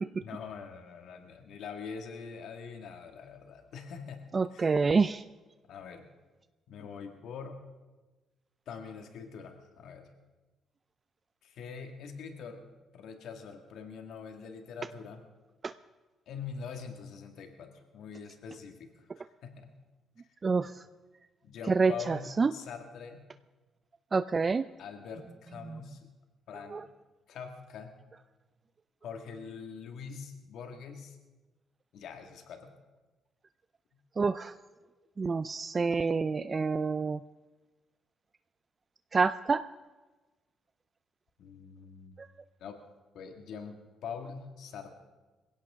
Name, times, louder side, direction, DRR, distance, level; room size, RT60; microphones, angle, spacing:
voice 1, 0.2-4.2 4.5-4.8 5.7-6.0 6.7-7.6 8.7-10.1 11.4-12.7 12.9-15.2 16.3-19.7 20.6-20.7 21.4-23.2 24.8-26.1 26.5-26.9 27.3-28.0 29.0-31.2 31.9-32.7 41.4-42.1 42.6-42.8 43.1-45.0, left 6 dB, 75° left, 5 dB, 1.9 m, -44 dB
voice 2, 4.3-5.2 20.4-20.7 21.7-22.5 24.1-24.6 26.7-26.8 34.2-34.5 35.2-37.2 39.1-39.6, right 4 dB, 35° right, 12 dB, 0.4 m, -27 dB
21.0 x 16.5 x 3.7 m, 1.2 s
cardioid pair, 90°, 0 cm